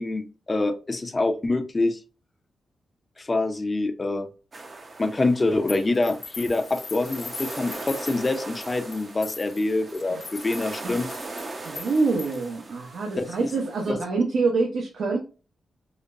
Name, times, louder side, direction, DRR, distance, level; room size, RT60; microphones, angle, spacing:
voice 1, 0.0-2.0 3.2-4.3 5.0-11.1 13.2-13.3 13.9-14.0, left 2 dB, 25° left, 6 dB, 0.5 m, -25 dB
sound 1, 4.5-13.9, right 2 dB, 35° right, 0.6 m, -40 dB
sound 2, 5.7-12.5, left 5 dB, 55° left, 0.9 m, -41 dB
voice 2, 11.6-15.2, right 3 dB, 75° right, -1 dB, 0.9 m, -26 dB
5.1 x 2.2 x 2.5 m, 0.33 s
wide cardioid pair, 130°, 0 cm